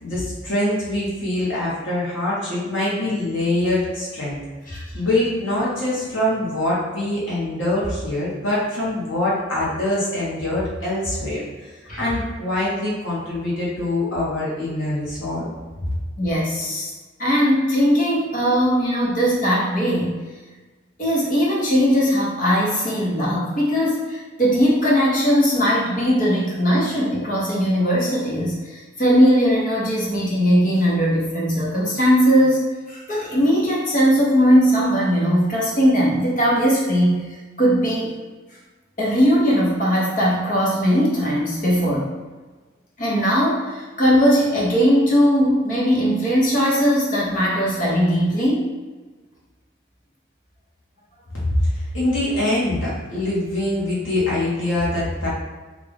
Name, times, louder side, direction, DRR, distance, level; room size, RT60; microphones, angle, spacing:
voice 1, 0.0-4.4 4.7-11.7 12.0-15.5 51.4-55.3, left 1 dB, 85° left, -7 dB, 1.2 m, -24 dB
voice 2, 16.2-16.9 17.2-20.2 21.0-38.1 39.0-42.1 43.0-48.7, equal, 45° left, -5 dB, 0.9 m, -19 dB
3.4 x 2.4 x 3.6 m, 1.3 s
head